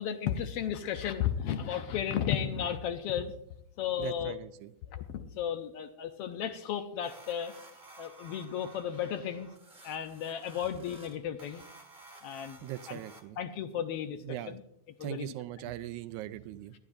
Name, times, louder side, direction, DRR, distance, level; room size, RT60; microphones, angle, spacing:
voice 1, 0.0-3.3 3.8-4.3 4.9-7.5 8.0-9.5 9.8-11.6 12.2-12.6 12.9-13.0 13.4-14.2 14.5-14.6 15.0-15.3, left 9 dB, 80° left, 9 dB, 1.4 m, -34 dB
voice 2, 4.0-4.7 12.6-13.4 14.2-14.6 15.0-16.8, right 13 dB, 90° right, 13 dB, 2.0 m, -40 dB
sound 1, 7.0-13.2, right 2 dB, 20° right, 1.5 m, -54 dB
18.5 x 12.5 x 2.6 m, 0.77 s
omnidirectional pair, 3.4 m